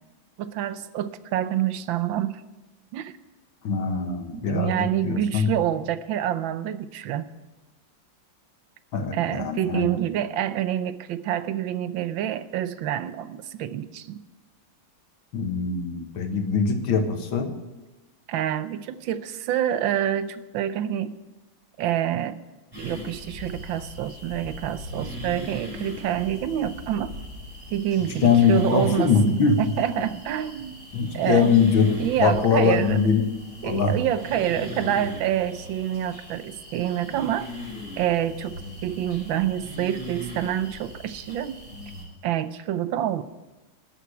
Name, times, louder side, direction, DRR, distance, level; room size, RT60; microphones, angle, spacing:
voice 1, 0.4-2.4 2.9-3.1 4.3-7.3 9.1-14.2 18.3-21.2 21.8-22.4 22.8-27.1 27.7-30.8 31.1-31.5 32.0-33.0 33.6-37.5 38.0-41.6 42.2-43.2, right 11 dB, 80° right, 14 dB, 1.5 m, -27 dB
voice 2, 3.6-5.5 8.9-9.9 15.3-17.5 28.2-29.6 30.0-30.1 30.9-31.9 32.2-33.2 33.6-34.0, left 5 dB, 85° left, 6 dB, 2.2 m, -22 dB
sound 1, 22.7-42.0, equal, 10° right, 6.4 m, -39 dB
12.5 x 8.3 x 9.5 m, 1.1 s
omnidirectional pair, 2.1 m